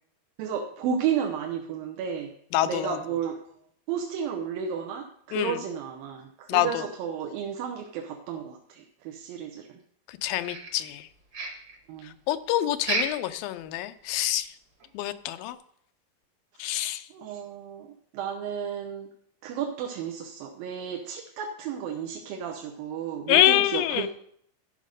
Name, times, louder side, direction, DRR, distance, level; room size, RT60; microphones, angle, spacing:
voice 1, 0.4-2.3 2.6-3.4 3.9-9.7 11.9-12.1 16.6-19.1 19.4-24.1, right 7 dB, 85° right, 2 dB, 2.7 m, -33 dB
voice 2, 2.5-3.0 5.3-5.6 6.5-6.9 10.2-11.1 12.3-14.5 14.9-15.6 16.6-17.0 23.3-24.1, left 13 dB, 85° left, 11 dB, 2.4 m, -26 dB
sound 1, 10.4-11.1 11.3-11.8 12.8-13.3 13.7-13.8 14.2-14.3 14.8-14.9, right 3 dB, 50° right, 1.5 m, -31 dB
13.0 x 6.4 x 5.2 m, 0.67 s
omnidirectional pair, 4.0 m